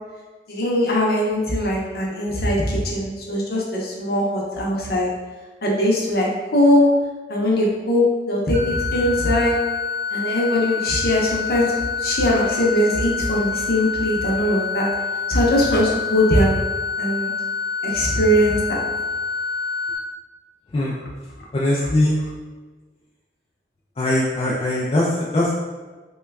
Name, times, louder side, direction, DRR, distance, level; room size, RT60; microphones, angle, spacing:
voice 1, 0.5-5.1 5.6-6.8 7.3-9.5 10.1-14.9 15.3-16.6 17.0-17.3 17.8-18.8, left 1 dB, 55° left, -3 dB, 0.7 m, -20 dB
sound 1, 8.5-20.0, left 5 dB, 30° right, 0.8 m, -27 dB
voice 2, 21.5-22.2 24.0-25.5, left 1 dB, 30° left, -6 dB, 0.3 m, -21 dB
3.0 x 2.2 x 3.3 m, 1.3 s
head